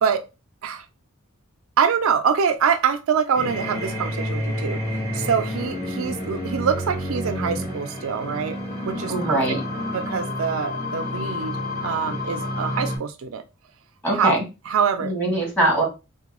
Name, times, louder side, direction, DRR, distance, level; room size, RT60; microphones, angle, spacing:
voice 1, 1.8-8.6 8.8-9.6 9.9-13.4 14.1-14.4 14.7-15.1, right 7 dB, 80° right, 9 dB, 0.4 m, -24 dB
sound 1, 3.3-13.0, left 1 dB, 35° left, 1.4 m, -29 dB
voice 2, 9.1-9.6 14.0-14.4 15.0-15.8, right 1 dB, 10° left, -2 dB, 1.4 m, -22 dB
3.6 x 2.2 x 3.0 m, 0.27 s
head